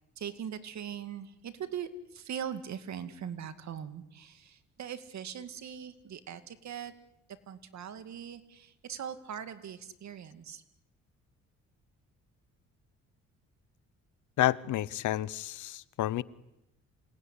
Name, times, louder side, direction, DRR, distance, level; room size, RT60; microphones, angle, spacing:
voice 1, 0.2-6.9 7.5-10.6, right 8 dB, 65° right, 10 dB, 2.3 m, -41 dB
voice 2, 14.4-16.2, left 14 dB, 80° left, 19 dB, 1.0 m, -30 dB
28.0 x 19.0 x 10.0 m, 0.87 s
cardioid pair, 90°, 30 cm